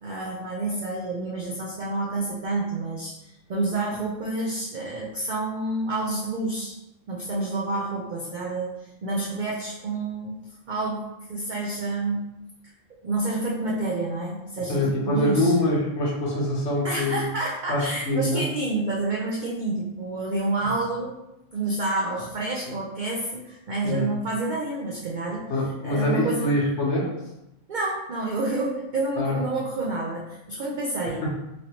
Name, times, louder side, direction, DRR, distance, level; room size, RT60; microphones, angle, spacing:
voice 1, 0.0-6.8 7.1-10.4 10.7-12.3 13.0-15.5 16.8-21.2 21.5-25.5 25.8-26.5 27.7-31.2, right 2 dB, 65° right, -3 dB, 0.5 m, -29 dB
voice 2, 14.7-17.2 17.7-18.4 23.8-24.1 25.5-27.1 29.2-29.4 31.2-31.3, left 1 dB, 65° left, -3 dB, 1.1 m, -24 dB
3.1 x 2.6 x 2.8 m, 0.91 s
omnidirectional pair, 1.3 m